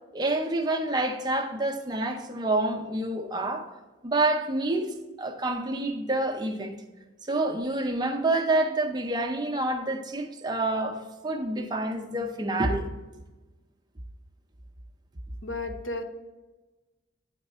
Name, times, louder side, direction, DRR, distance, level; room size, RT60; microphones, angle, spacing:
voice 1, 0.1-3.7 4.0-6.8 7.2-12.9, right 2 dB, 20° right, 0.6 m, -28 dB
voice 2, 15.4-16.0, left 2 dB, 85° left, 0.8 m, -33 dB
8.9 x 4.4 x 4.2 m
head